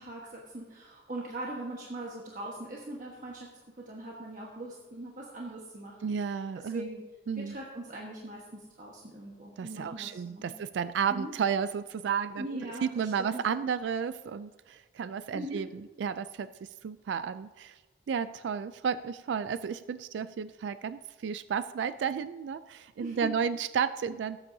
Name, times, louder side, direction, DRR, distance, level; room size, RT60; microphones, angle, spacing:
voice 1, 0.0-3.5 3.8-7.0 7.4-10.5 11.1-11.3 12.4-13.4 15.3-15.6 23.0-23.3, right 1 dB, 45° right, -3 dB, 1.3 m, -41 dB
voice 2, 6.0-6.9 7.3-7.6 9.6-15.7 16.0-17.8 18.1-24.4, right 7 dB, 85° right, 13 dB, 0.3 m, -32 dB
17.0 x 8.7 x 2.7 m, 1.3 s
head